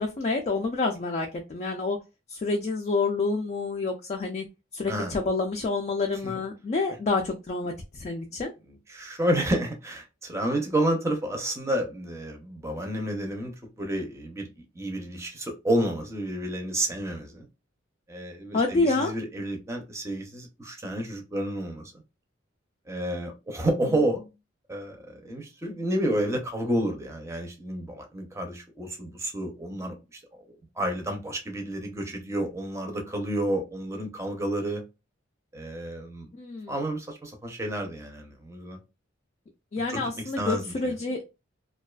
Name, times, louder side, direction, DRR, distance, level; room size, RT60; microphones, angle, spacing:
voice 1, 0.0-2.0 2.3-4.4 4.7-8.5 18.5-19.1 36.3-36.8 39.7-41.2, left 3 dB, 35° left, 0.3 m, -28 dB
voice 2, 8.9-13.5 13.8-14.5 14.7-17.5 18.1-21.9 22.9-24.2 24.7-30.4 30.8-34.8 35.5-36.3 36.7-38.8 39.9-40.9, right 1 dB, 15° right, 0.6 m, -30 dB
2.4 x 2.3 x 2.2 m
head